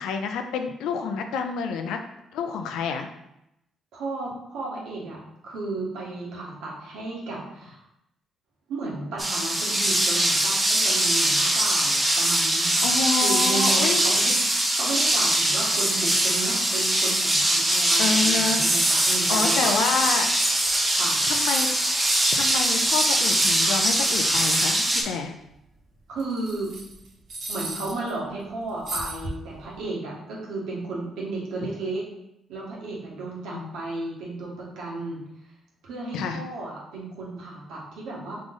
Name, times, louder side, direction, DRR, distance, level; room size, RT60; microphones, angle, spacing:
voice 1, 0.0-2.0 2.3-3.1 12.8-14.0 18.0-18.6 19.3-20.3 21.3-21.7 22.3-25.3 33.5-33.8 36.1-36.4, left 5 dB, 90° left, 6 dB, 0.5 m, -28 dB
voice 2, 3.9-5.2 5.4-7.8 8.7-12.9 13.2-14.3 14.7-19.7 20.9-21.2 26.1-26.7 27.5-32.0 32.5-35.2 35.8-38.4, right 2 dB, 85° right, -3 dB, 1.3 m, -33 dB
sound 1, 9.2-25.0, right 1 dB, 15° right, 0.8 m, -22 dB
sound 2, 18.8-19.5 19.8-19.9 20.7-20.8 20.9-24.7 26.2-28.1 28.9-29.6, right 2 dB, 60° right, 1.1 m, -35 dB
3.8 x 3.3 x 3.7 m, 0.83 s
cardioid pair, 90°, 0 cm